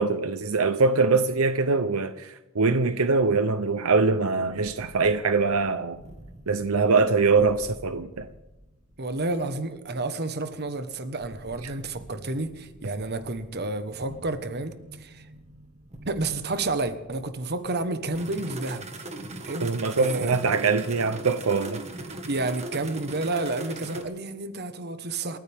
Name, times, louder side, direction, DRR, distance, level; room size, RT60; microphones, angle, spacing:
voice 1, 0.0-6.0 6.5-8.3 11.6-11.7 19.6-21.8, right 4 dB, 80° right, 0.8 m, -23 dB
sound 1, 4.4-24.0, right 2 dB, 30° right, 1.7 m, -42 dB
voice 2, 9.0-15.3 16.0-18.9 19.4-20.4 22.3-25.4, right 2 dB, 50° right, 1.3 m, -30 dB
28.0 x 14.0 x 3.6 m
head